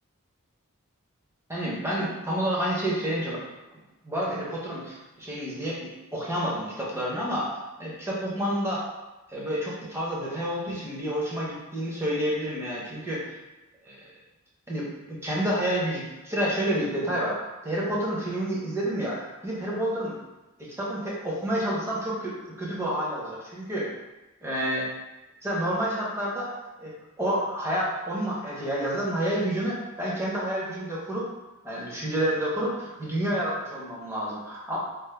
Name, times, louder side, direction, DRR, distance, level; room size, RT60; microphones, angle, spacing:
voice 1, 1.5-3.4 4.0-8.8 9.3-13.4 13.8-14.0 14.7-20.1 20.6-23.9 24.4-24.9 25.4-26.9 27.2-31.3 31.6-34.8, equal, 10° right, -6 dB, 0.7 m, -29 dB
3.4 x 2.1 x 3.3 m, 1.1 s
head